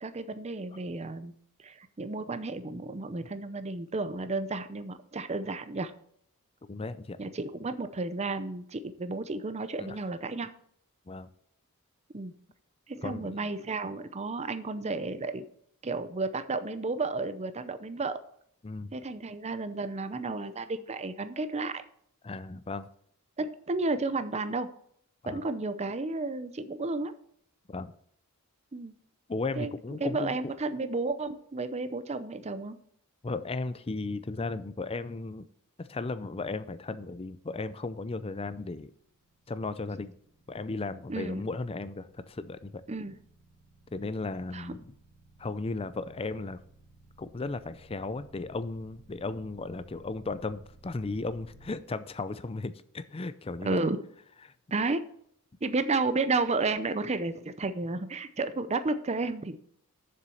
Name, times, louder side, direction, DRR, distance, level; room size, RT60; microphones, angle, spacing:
voice 1, 0.0-1.3 1.6-5.9 7.2-10.5 12.1-12.3 12.9-15.4 15.8-18.2 18.9-21.8 23.4-24.7 25.3-27.1 28.7-28.9 29.6-29.7 30.0-32.8 41.1-41.4 42.9-43.1 44.5-44.7 53.6-54.0 54.7-55.0 55.6-59.6, right 3 dB, 30° right, 0.6 m, -32 dB
voice 2, 6.7-7.2 9.8-10.0 11.1-11.3 13.0-13.4 18.6-18.9 22.2-22.9 25.2-25.4 27.7-27.9 29.3-30.4 33.2-35.5 35.8-38.9 39.5-40.1 40.5-42.8 43.9-44.9 45.4-46.6 47.2-53.8 54.4-54.5, left 3 dB, 25° left, 0.5 m, -35 dB
sound 1, 39.0-51.7, right 2 dB, 75° right, 2.5 m, -58 dB
7.4 x 6.9 x 6.3 m
head